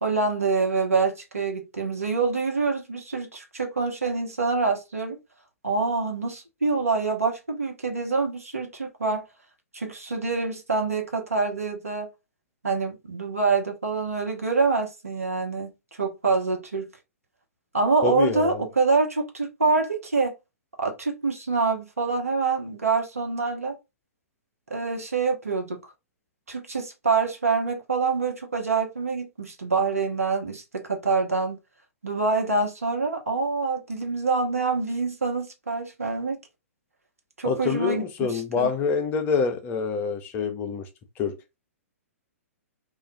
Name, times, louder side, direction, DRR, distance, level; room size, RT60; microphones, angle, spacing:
voice 1, 0.0-5.2 5.6-9.2 9.7-12.1 12.6-15.7 16.0-16.9 17.7-20.3 20.8-23.8 24.7-25.8 26.5-31.6 32.0-36.4 37.4-38.7, right 4 dB, 75° right, 1.1 m, -26 dB
voice 2, 18.0-18.6 37.4-40.9 41.2-41.4, left 5 dB, 25° left, 0.6 m, -26 dB
2.5 x 2.3 x 3.9 m
figure-of-eight pair, 115°, 8 cm